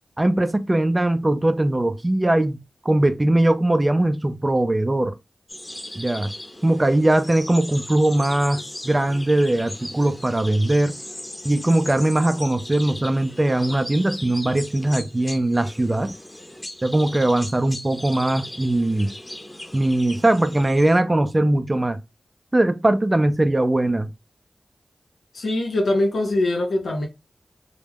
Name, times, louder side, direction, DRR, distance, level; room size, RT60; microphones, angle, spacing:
voice 1, 0.2-2.6 2.9-5.2 6.0-6.3 6.6-11.0 11.4-16.1 16.8-19.1 19.7-22.0 22.5-24.1, right 1 dB, 30° right, 0.3 m, -20 dB
sound 1, 5.5-21.0, left 1 dB, 25° left, 0.7 m, -38 dB
voice 2, 25.3-27.1, left 1 dB, 85° left, 0.7 m, -22 dB
2.1 x 2.1 x 3.3 m
cardioid pair, 50°, 0 cm